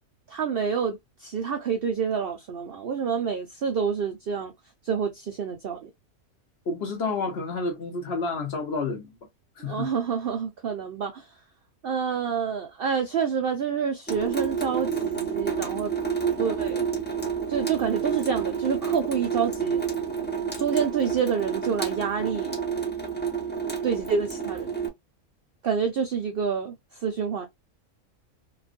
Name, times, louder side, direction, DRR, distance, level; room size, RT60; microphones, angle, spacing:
voice 1, 0.3-4.5 4.8-5.9 9.6-11.3 11.8-15.9 16.4-16.9 17.5-19.8 20.6-22.6 23.8-24.7 25.6-27.5, right 6 dB, 85° right, 0.5 m, -28 dB
voice 2, 6.7-9.1 9.6-9.9, left 3 dB, 50° left, 1.0 m, -30 dB
Water tap faucet / Sink (filling or washing) / Drip, 14.1-24.9, right 6 dB, 15° left, 0.4 m, -29 dB
2.9 x 2.4 x 2.4 m
omnidirectional pair, 1.6 m